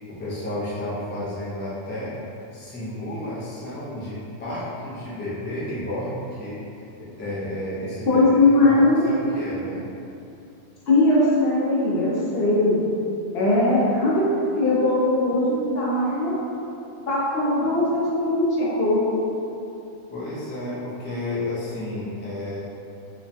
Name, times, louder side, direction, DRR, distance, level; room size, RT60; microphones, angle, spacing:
voice 1, 0.1-2.2 2.5-6.6 7.0-8.3 8.6-8.8 9.0-9.8 20.1-22.6, left 1 dB, 15° left, -10 dB, 0.3 m, -31 dB
voice 2, 8.1-9.0 10.9-12.8 13.3-16.4 17.1-19.0, left 2 dB, 65° left, -7 dB, 0.9 m, -20 dB
3.0 x 2.2 x 2.6 m, 2.7 s
omnidirectional pair, 1.2 m